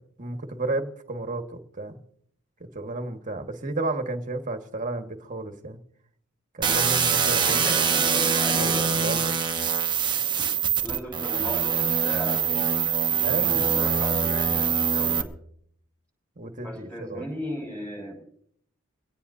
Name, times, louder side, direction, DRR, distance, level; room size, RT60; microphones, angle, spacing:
voice 1, 0.2-2.0 2.6-5.8 6.5-7.7 8.5-9.3 13.2-13.6 16.4-17.3, right 2 dB, 40° right, 5 dB, 1.6 m, -32 dB
sound 1, 6.6-15.2, right 7 dB, 20° right, 0.9 m, -24 dB
voice 2, 7.5-9.2 10.4-10.5 10.8-12.7 13.0-15.3 16.6-18.2, equal, 5° left, 2 dB, 6.0 m, -37 dB
22.0 x 17.5 x 2.8 m, 0.66 s
head